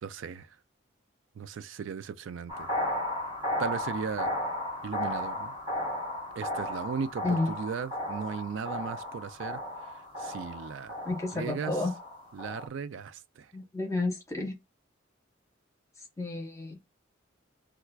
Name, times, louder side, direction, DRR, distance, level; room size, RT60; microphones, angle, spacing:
voice 1, 0.0-0.5 1.4-2.7 3.6-4.3 4.8-5.5 6.4-9.6 10.2-10.9 11.3-11.7 12.3-13.5, right 6 dB, 75° right, 0.4 m, -36 dB
sound 1, 2.5-12.7, left 1 dB, 25° right, 1.4 m, -35 dB
voice 2, 7.2-7.5 11.0-11.9 13.5-14.5 16.2-16.8, left 2 dB, 15° left, 0.8 m, -31 dB
4.4 x 2.4 x 2.2 m
head